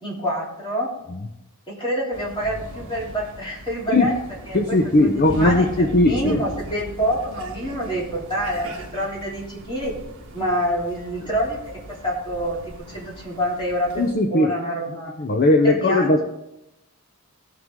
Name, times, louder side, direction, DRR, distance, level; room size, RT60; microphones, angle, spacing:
voice 1, 0.0-0.9 1.7-4.1 4.5-5.1 5.3-9.9 10.3-15.1 15.6-16.2, equal, 20° left, -5 dB, 3.2 m, -27 dB
sound 1, 2.1-14.1, right 1 dB, 60° right, 1.5 m, -39 dB
voice 2, 4.5-6.4 14.0-14.5 15.2-16.2, left 2 dB, 45° left, 4 dB, 0.7 m, -18 dB
17.0 x 6.2 x 3.7 m, 0.88 s
head